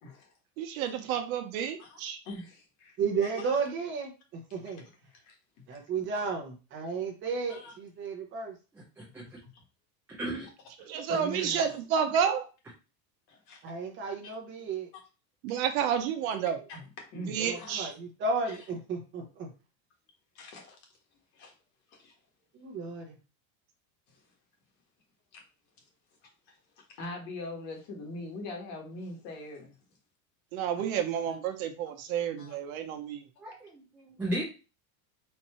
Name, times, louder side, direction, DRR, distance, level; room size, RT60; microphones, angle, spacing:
voice 1, 0.0-0.3 1.8-2.0 2.2-3.0 3.2-3.6 4.5-5.3 6.1-6.3 7.5-7.7 9.4-9.5 10.8-11.8 13.3-13.6 14.2-14.3 16.7-17.8 18.4-18.7 20.3-20.8 21.3-21.5 21.9-22.1 24.1-24.2 25.3-25.4 26.5-29.7 31.2-31.4 32.4-32.7, left 2 dB, 50° left, 1 dB, 1.8 m, -43 dB
voice 2, 0.6-2.2 10.8-12.4 15.4-16.6 17.3-17.9 30.5-33.2, right 8 dB, 75° right, 6 dB, 1.1 m, -30 dB
voice 3, 3.0-4.1 4.5-4.8 5.7-8.5 13.6-14.9 17.4-19.5 22.6-23.1, right 4 dB, 25° right, 3 dB, 0.9 m, -33 dB
voice 4, 8.7-9.2 10.2-10.5 33.4-34.4, right 1 dB, 5° right, -5 dB, 0.4 m, -35 dB
4.4 x 2.7 x 4.3 m, 0.32 s
cardioid pair, 175°, 43 cm